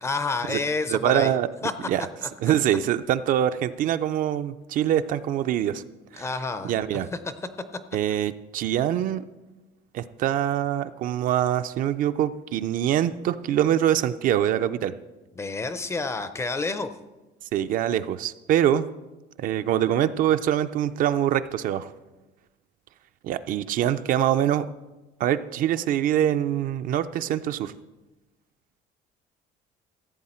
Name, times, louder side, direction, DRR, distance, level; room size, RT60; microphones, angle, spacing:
voice 1, 0.0-1.3 1.6-2.3 6.2-6.7 7.1-7.2 15.4-16.9, left 3 dB, 15° left, 11 dB, 0.4 m, -29 dB
voice 2, 0.9-1.5 1.9-2.1 2.4-5.8 6.1-6.3 6.6-7.1 7.9-9.2 9.9-14.9 17.5-18.9 19.4-21.9 23.2-24.7 25.2-27.7, right 11 dB, 50° right, 12 dB, 0.4 m, -24 dB
15.0 x 8.4 x 4.3 m, 1.1 s
cardioid pair, 175°, 18 cm